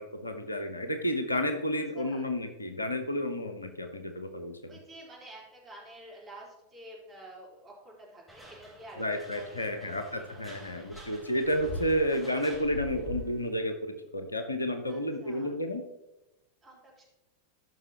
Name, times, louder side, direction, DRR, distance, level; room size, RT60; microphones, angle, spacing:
voice 1, 0.0-4.7 9.0-15.8, equal, 80° left, 7 dB, 0.8 m, -31 dB
voice 2, 1.7-2.3 4.7-10.9 11.5-12.1 14.9-15.5 16.6-17.1, right 1 dB, 20° right, -4 dB, 3.7 m, -50 dB
sound 1, 8.3-13.5, left 1 dB, 5° right, 3.5 m, -43 dB
14.0 x 5.9 x 2.9 m, 0.94 s
figure-of-eight pair, 90°, 0 cm